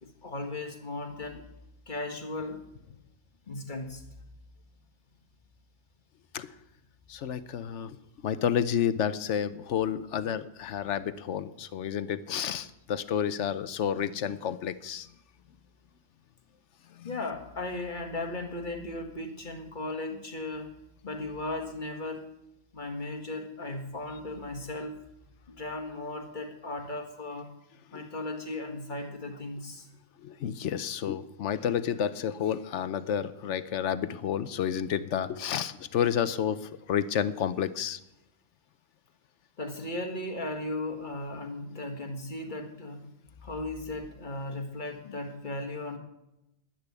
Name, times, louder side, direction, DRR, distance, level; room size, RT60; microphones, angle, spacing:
voice 1, 0.0-1.4 1.9-2.6 3.5-4.0 17.0-20.7 21.0-22.3 22.7-25.0 25.5-27.5 27.9-29.9 39.6-43.0 43.4-46.0, left 2 dB, 35° left, 4 dB, 1.8 m, -36 dB
voice 2, 7.1-8.0 8.2-15.1 16.9-17.2 27.9-28.1 30.2-38.0, left 9 dB, 65° left, 14 dB, 0.9 m, -30 dB
10.5 x 10.0 x 8.2 m, 0.89 s
omnidirectional pair, 1.4 m